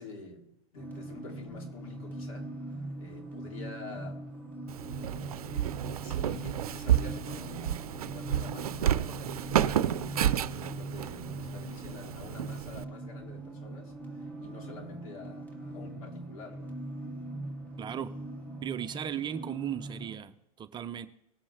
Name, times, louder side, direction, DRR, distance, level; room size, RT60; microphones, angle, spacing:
voice 1, 0.0-4.2 5.0-16.8, left 4 dB, 70° left, 1 dB, 2.8 m, -48 dB
sound 1, 0.7-20.1, right 1 dB, 10° left, 2.4 m, -41 dB
Walk footsteps, 4.7-12.8, right 11 dB, 80° right, 0.5 m, -31 dB
voice 2, 17.8-18.1 18.6-21.1, right 9 dB, 25° right, 10 dB, 0.6 m, -36 dB
19.5 x 7.5 x 3.3 m, 0.86 s
hypercardioid pair, 105°, 19 cm